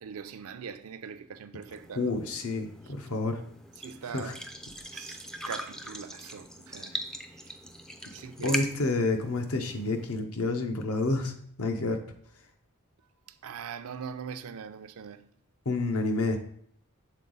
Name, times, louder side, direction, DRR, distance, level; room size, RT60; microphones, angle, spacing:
voice 1, 0.0-2.0 3.8-4.3 4.9-7.0 7.3-7.6 8.1-8.6 13.3-15.3, right 6 dB, 70° right, 0.4 m, -41 dB
sound 1, 1.7-10.2, equal, 5° left, 0.3 m, -41 dB
voice 2, 1.9-3.4 4.1-4.3 8.4-12.0 15.6-16.4, left 2 dB, 75° left, 0.8 m, -29 dB
6.6 x 3.9 x 3.8 m
head